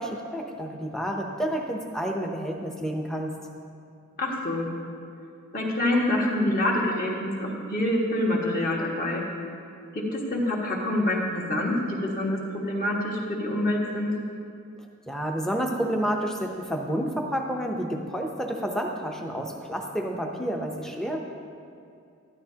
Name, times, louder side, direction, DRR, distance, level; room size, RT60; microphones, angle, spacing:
voice 1, 0.0-3.3 15.1-21.2, equal, ahead, 1 dB, 0.7 m, -30 dB
voice 2, 4.2-4.7 5.5-9.2 10.1-14.1, left 1 dB, 40° left, -3 dB, 1.6 m, -26 dB
13.0 x 11.5 x 2.8 m, 2.5 s
head